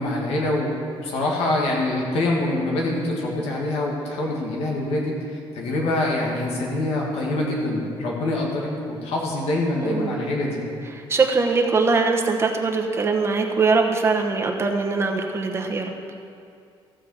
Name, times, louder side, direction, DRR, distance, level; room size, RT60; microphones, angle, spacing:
voice 1, 0.0-10.6, left 1 dB, 90° left, -2 dB, 2.0 m, -25 dB
voice 2, 9.8-10.3 11.0-15.9, right 4 dB, 25° right, 3 dB, 1.0 m, -22 dB
15.0 x 5.2 x 7.0 m, 2.4 s
cardioid pair, 155°, 10 cm